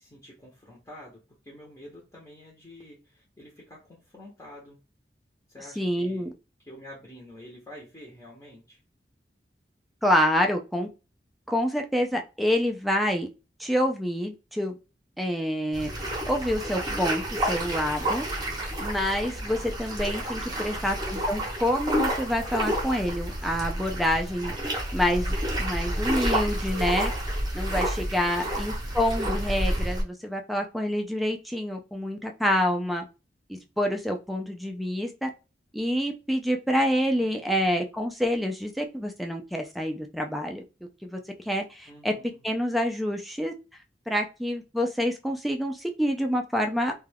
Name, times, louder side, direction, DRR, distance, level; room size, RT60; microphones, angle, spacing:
voice 1, 0.0-4.8 5.5-6.3 6.6-8.8 20.5-21.1 28.5-29.0 37.1-37.6 41.9-42.5, left 1 dB, 20° left, -3 dB, 0.7 m, -48 dB
voice 2, 5.8-6.3 10.0-10.9 11.5-13.3 13.6-14.8 15.2-15.9 16.3-18.3 18.8-24.5 24.9-27.1 27.5-33.0 33.5-35.3 35.7-40.6 41.0-41.2 41.4-42.1 42.4-43.5 44.1-46.9, equal, ahead, 3 dB, 0.3 m, -27 dB
sound 1, 15.7-30.0, right 1 dB, 25° right, 0.8 m, -29 dB
2.3 x 2.2 x 3.3 m, 0.30 s
head